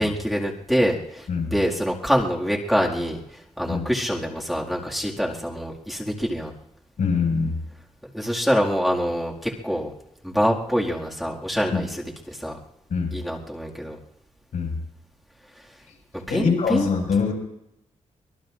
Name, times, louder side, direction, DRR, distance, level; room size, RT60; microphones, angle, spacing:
voice 1, 0.0-6.5 8.1-9.9 10.2-12.6 13.1-14.0 16.1-16.9, equal, ahead, -3 dB, 2.1 m, -25 dB
voice 2, 7.0-7.6 11.7-11.8 12.9-13.2 14.5-14.8 16.3-17.3, left 5 dB, 90° left, 0 dB, 5.6 m, -23 dB
24.5 x 22.0 x 2.5 m, 0.84 s
wide cardioid pair, 150°, 13 cm